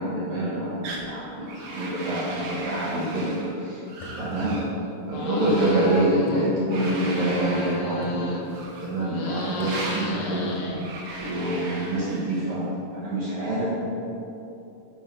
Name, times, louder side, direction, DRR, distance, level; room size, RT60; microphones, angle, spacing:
voice 1, 0.0-3.3 3.6-3.8 4.2-4.6 5.1-8.3 8.8-10.6 11.2-12.6 12.9-13.7, right 1 dB, 55° right, -9 dB, 1.7 m, -26 dB
sound 1, 0.8-1.1 1.5-3.5 3.9-4.7 5.3-6.1 6.7-7.8 8.5-9.0 9.6-10.1 10.8-12.5, right 2 dB, 80° right, 2.2 m, -37 dB
sound 2, 4.0-5.2 6.3-7.1 8.0-8.6 9.6-10.3, left 2 dB, 85° left, 2.3 m, -41 dB
sound 3, 5.1-6.5 6.8-8.6 9.0-11.2, left 1 dB, 70° left, 1.8 m, -34 dB
5.6 x 4.6 x 5.2 m, 2.8 s
omnidirectional pair, 3.7 m